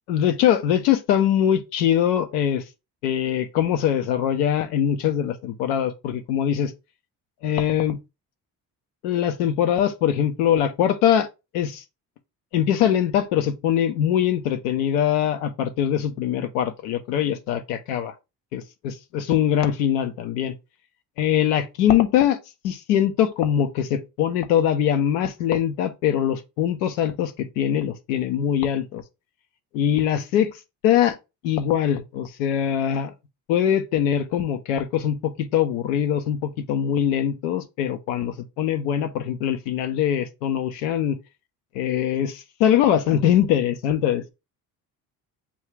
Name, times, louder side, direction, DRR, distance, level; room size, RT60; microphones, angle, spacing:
voice 1, 0.1-2.6 3.0-6.7 7.4-8.0 9.0-11.3 11.5-11.8 12.5-18.1 18.5-20.5 21.2-22.4 22.6-29.0 29.7-30.5 30.8-31.2 31.4-33.1 33.5-41.2 41.7-44.3, left 10 dB, 85° left, 0.7 m, -22 dB
7.0 x 2.4 x 3.1 m
hypercardioid pair, 55°, 46 cm